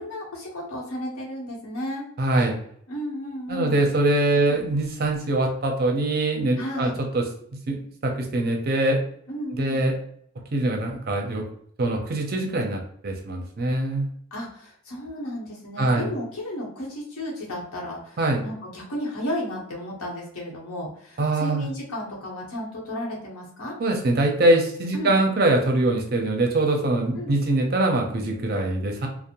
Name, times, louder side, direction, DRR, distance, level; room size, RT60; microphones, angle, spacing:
voice 1, 0.0-2.0 2.9-3.8 4.4-4.5 6.6-6.9 9.3-9.8 14.3-23.7 24.9-25.1 27.1-27.3, left 1 dB, 80° left, -3 dB, 0.9 m, -33 dB
voice 2, 2.2-2.5 3.5-7.2 7.5-9.0 9.5-9.9 10.5-11.4 11.8-14.1 15.8-16.1 18.2-18.4 21.2-21.7 23.8-29.1, right 2 dB, 45° right, 2 dB, 0.5 m, -23 dB
2.5 x 2.0 x 2.8 m, 0.65 s
head